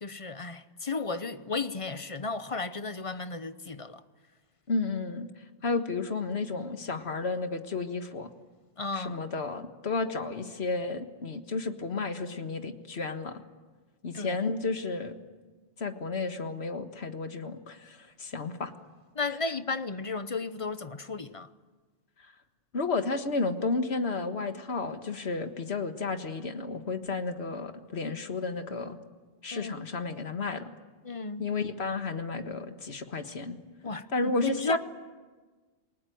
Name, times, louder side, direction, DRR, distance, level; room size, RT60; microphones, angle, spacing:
voice 1, 0.0-4.0 8.8-9.2 14.1-14.4 19.1-21.5 29.5-29.7 31.0-31.4 33.8-34.8, left 3 dB, 30° left, 0.8 m, -33 dB
voice 2, 4.7-5.3 5.6-8.3 8.9-13.4 14.0-15.1 15.8-18.7 22.7-29.0 29.4-30.7 31.4-33.6 34.1-34.8, left 3 dB, 65° left, 1.8 m, -32 dB
28.0 x 20.0 x 9.3 m
omnidirectional pair, 1.2 m